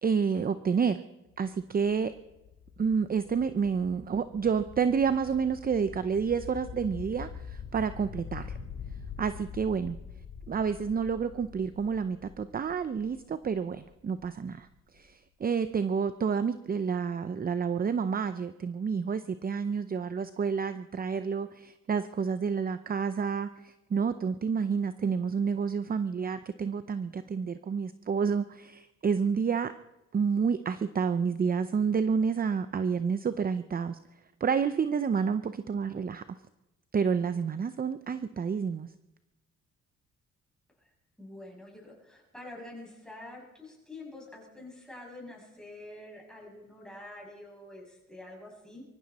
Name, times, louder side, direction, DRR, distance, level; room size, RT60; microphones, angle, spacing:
voice 1, 0.0-1.0 1.4-2.1 2.8-8.6 9.2-10.0 10.5-14.7 14.9-29.7 30.1-34.0 34.4-36.2 36.9-38.9, right 6 dB, 30° right, 12 dB, 0.6 m, -29 dB
sound 1, 1.3-15.0, left 6 dB, 80° left, 2.7 m, -45 dB
voice 2, 41.2-48.8, left 1 dB, ahead, -2 dB, 7.2 m, -47 dB
23.5 x 14.5 x 4.2 m, 0.99 s
cardioid pair, 90°, 30 cm